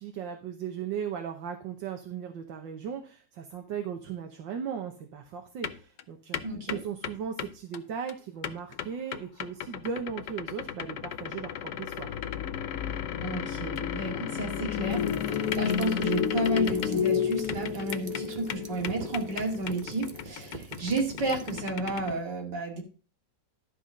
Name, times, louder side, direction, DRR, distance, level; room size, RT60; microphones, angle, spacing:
voice 1, 0.0-12.2, right 7 dB, 90° right, 5 dB, 1.7 m, -37 dB
sound 1, 5.6-6.0 6.3-7.8 8.1-22.1, left 10 dB, 75° left, 1.4 m, -38 dB
voice 2, 6.4-6.8 13.2-22.8, right 2 dB, 70° right, 0 dB, 2.9 m, -32 dB
sound 2, 11.9-20.2, left 8 dB, 60° left, 1.0 m, -31 dB
sound 3, 14.9-21.6, right 4 dB, 40° right, 0.7 m, -44 dB
12.5 x 4.2 x 6.3 m, 0.37 s
omnidirectional pair, 2.0 m